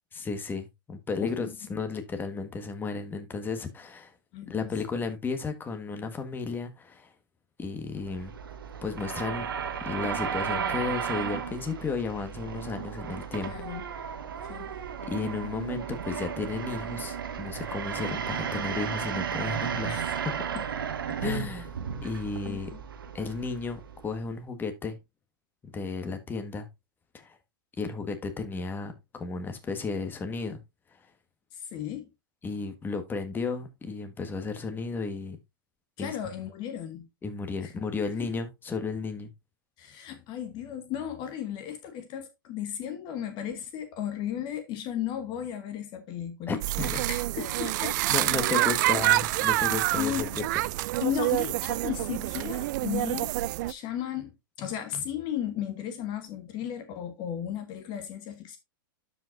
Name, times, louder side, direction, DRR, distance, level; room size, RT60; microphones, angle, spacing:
voice 1, 0.1-4.1 4.5-7.1 7.6-8.3 8.8-9.5 9.8-13.5 15.1-20.0 21.2-21.7 22.0-22.7 23.1-25.0 25.6-26.7 27.1-27.4 27.8-30.6 32.4-35.4 36.0-36.2 37.2-39.3 46.5-47.0 48.1-50.3, left 4 dB, 15° left, 1.4 m, -33 dB
voice 2, 1.2-1.5 4.3-4.7 13.5-13.8 14.4-14.8 19.9-20.1 20.5-20.6 22.5-22.8 31.5-32.1 36.0-37.1 37.6-37.7 39.8-48.6 48.9-49.0 49.9-50.3 51.0-53.3 53.6-58.6, left 10 dB, 40° left, 1.2 m, -35 dB
sound 1, 8.0-24.3, right 7 dB, 85° right, 1.2 m, -34 dB
sound 2, 46.6-53.7, right 17 dB, 60° right, 0.3 m, -27 dB
12.5 x 5.1 x 2.6 m
hypercardioid pair, 115°, 11 cm